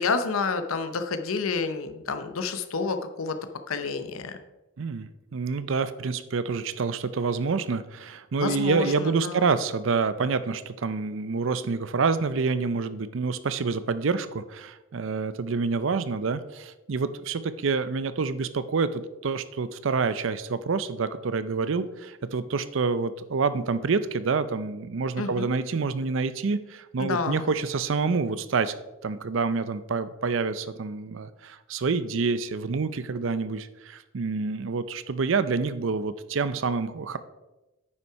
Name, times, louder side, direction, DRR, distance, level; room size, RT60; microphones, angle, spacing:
voice 1, 0.0-3.4 3.7-4.4 8.4-9.5 25.2-25.5 27.0-27.5, left 4 dB, 85° left, 8 dB, 0.7 m, -29 dB
voice 2, 4.8-28.7 29.0-37.2, right 4 dB, 65° right, 13 dB, 0.5 m, -27 dB
9.6 x 5.7 x 4.6 m, 1.0 s
head